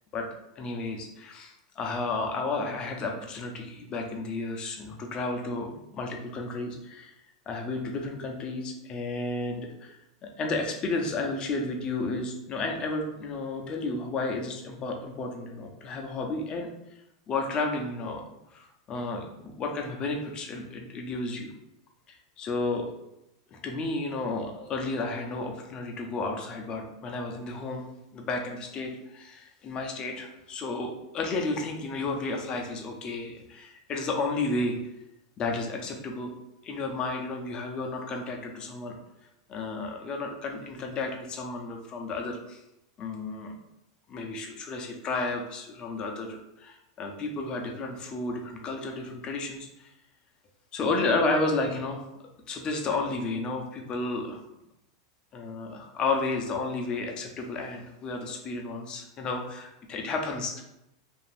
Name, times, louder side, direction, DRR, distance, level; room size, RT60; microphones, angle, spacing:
voice 1, 0.6-7.1 7.5-10.0 10.2-16.7 17.3-18.2 18.5-21.5 22.4-22.9 23.5-27.8 28.1-34.8 35.4-36.3 36.6-38.9 39.5-42.6 43.0-43.6 44.1-49.9 50.7-52.1 52.5-54.4 55.3-60.6, left 3 dB, 30° left, 2 dB, 0.5 m, -32 dB
2.5 x 2.4 x 3.2 m, 0.87 s
hypercardioid pair, 120°, 3 cm